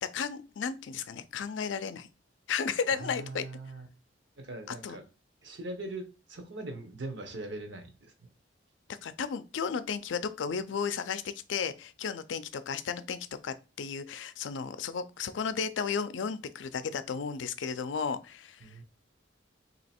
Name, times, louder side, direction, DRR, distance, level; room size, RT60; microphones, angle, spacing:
voice 1, 0.0-2.1 2.5-3.4 4.8-5.0 9.0-18.7, left 6 dB, 90° left, 0.4 m, -34 dB
voice 2, 2.9-3.9 4.4-5.0 5.4-8.3 18.6-18.8, right 2 dB, 75° right, 0.9 m, -41 dB
3.1 x 2.8 x 4.2 m
head